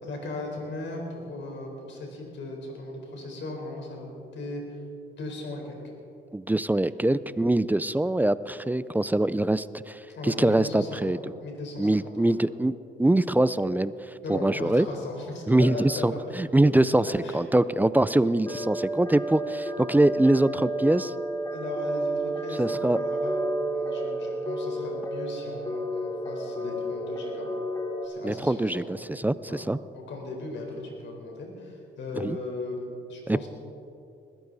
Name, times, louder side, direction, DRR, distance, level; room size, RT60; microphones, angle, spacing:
voice 1, 0.0-4.1 4.3-4.8 5.1-5.8 10.1-11.9 12.2-12.3 14.2-16.2 17.0-17.4 21.5-27.5 28.0-28.9 29.5-33.5, left 2 dB, 65° left, 1 dB, 4.2 m, -37 dB
voice 2, 6.3-11.2 11.8-13.9 14.3-14.9 15.5-21.1 22.6-23.0 28.2-29.8 32.2-32.4 33.3-33.5, right 1 dB, 10° right, 16 dB, 0.4 m, -23 dB
sound 1, 18.5-28.1, right 1 dB, 15° left, 2.8 m, -31 dB
21.0 x 14.5 x 4.1 m, 2.7 s
cardioid pair, 90°, 20 cm